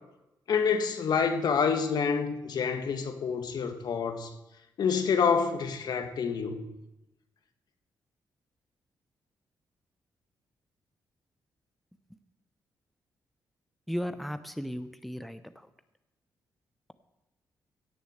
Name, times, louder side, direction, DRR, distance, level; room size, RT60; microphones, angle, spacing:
voice 1, 0.5-4.3 4.8-6.7, left 6 dB, 65° left, 7 dB, 1.6 m, -27 dB
voice 2, 13.9-15.4, equal, ahead, 10 dB, 0.7 m, -35 dB
16.5 x 6.8 x 8.0 m, 0.97 s
cardioid pair, 85°, 7 cm